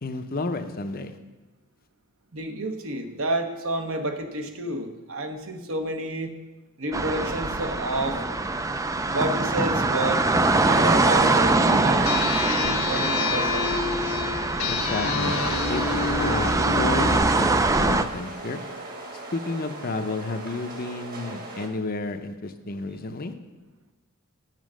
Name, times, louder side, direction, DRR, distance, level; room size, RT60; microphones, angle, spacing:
voice 1, 0.0-1.2 14.7-15.4 15.7-15.8 16.2-18.6 19.3-23.3, left 3 dB, 40° left, 8 dB, 0.6 m, -31 dB
voice 2, 2.3-6.3 6.8-8.2 9.1-10.2 10.6-13.7, right 1 dB, 65° right, 5 dB, 1.1 m, -30 dB
sound 1, 6.9-18.0, right 2 dB, 15° right, 0.3 m, -23 dB
sound 2, 12.1-17.2, left 6 dB, 70° left, 1.0 m, -28 dB
sound 3, 15.2-21.7, right 2 dB, 40° right, 1.5 m, -38 dB
9.2 x 7.3 x 6.3 m, 1.1 s
head